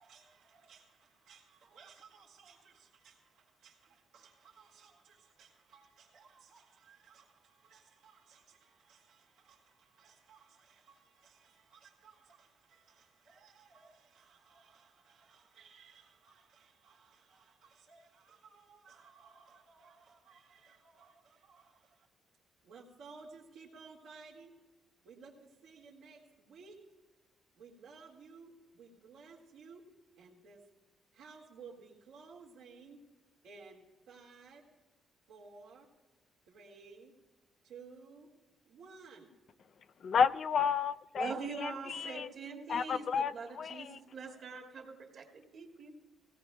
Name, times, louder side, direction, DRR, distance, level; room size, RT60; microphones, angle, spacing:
voice 1, 0.0-22.1 22.6-24.5 25.0-26.8 27.5-29.8 30.1-30.6 31.1-33.0 33.4-34.6 35.3-35.9 36.5-37.1 37.6-38.3 38.6-39.3, right 4 dB, 85° right, 1.8 m, -57 dB
voice 2, 40.0-41.3 41.6-42.3 42.7-44.0, left 6 dB, 55° left, 0.4 m, -31 dB
voice 3, 41.2-45.9, right 4 dB, 60° right, 1.9 m, -43 dB
18.5 x 16.5 x 2.2 m
cardioid pair, 90°, 0 cm